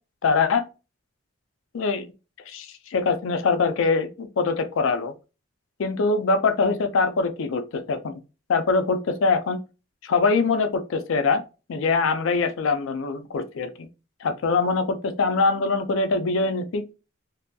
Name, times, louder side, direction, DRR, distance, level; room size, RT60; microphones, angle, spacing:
voice 1, 0.2-0.6 1.7-2.1 2.5-5.1 5.8-8.2 8.5-9.6 10.0-11.4 11.7-13.9 14.2-16.8, left 4 dB, 70° left, 0.4 m, -23 dB
2.6 x 2.2 x 2.6 m
head